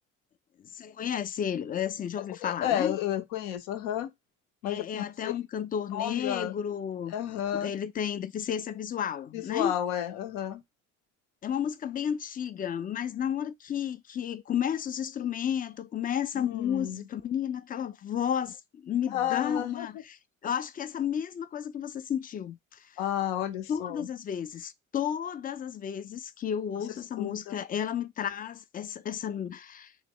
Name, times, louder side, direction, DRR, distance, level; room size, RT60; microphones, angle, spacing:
voice 1, 0.7-2.9 4.7-7.1 7.5-9.7 11.4-23.0 23.7-29.9, left 9 dB, 25° left, 0.3 m, -32 dB
voice 2, 2.4-4.1 4.6-5.3 5.9-6.5 7.1-7.7 9.3-10.6 16.4-17.1 19.1-19.9 23.0-24.1 27.2-27.6, left 11 dB, 70° left, 0.6 m, -31 dB
3.0 x 2.1 x 3.7 m
hypercardioid pair, 50°, 39 cm